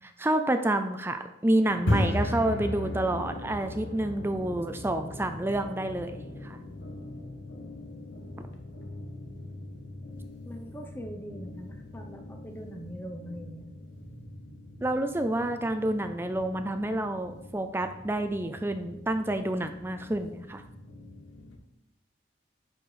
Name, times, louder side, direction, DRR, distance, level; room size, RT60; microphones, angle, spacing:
voice 1, 0.2-6.6 14.8-20.6, right 1 dB, 10° right, 7 dB, 0.4 m, -29 dB
sound 1, 1.7-21.6, left 1 dB, 90° left, 1.1 m, -38 dB
voice 2, 10.5-13.7, equal, 10° left, 2 dB, 0.7 m, -42 dB
10.0 x 4.4 x 4.9 m, 0.89 s
head